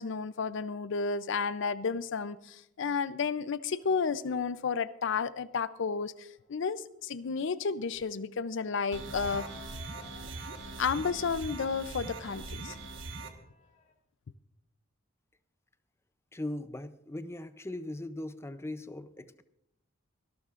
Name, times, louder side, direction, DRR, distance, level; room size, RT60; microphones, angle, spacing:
voice 1, 0.0-9.5 10.8-12.8, left 5 dB, 65° left, 0.5 m, -32 dB
sound 1, 3.6-13.9, left 4 dB, 45° left, 2.4 m, -60 dB
sound 2, 8.9-13.3, right 3 dB, 70° right, 1.4 m, -41 dB
voice 2, 16.3-19.4, left 1 dB, 15° left, 0.5 m, -39 dB
24.5 x 12.0 x 2.5 m
head